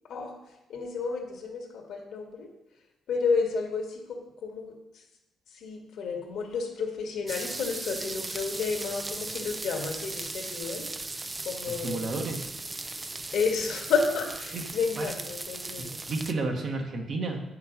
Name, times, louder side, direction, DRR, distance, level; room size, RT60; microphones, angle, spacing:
voice 1, 0.7-2.5 3.1-4.7 5.6-10.9 11.5-12.1 13.3-16.1, left 5 dB, 75° left, 2 dB, 1.9 m, -31 dB
sound 1, 7.3-16.3, right 2 dB, 20° right, 0.5 m, -37 dB
voice 2, 11.7-12.5 14.5-15.1 15.8-17.4, right 3 dB, 55° right, 2 dB, 1.6 m, -32 dB
8.4 x 5.7 x 5.2 m, 0.90 s
cardioid pair, 90°, 0 cm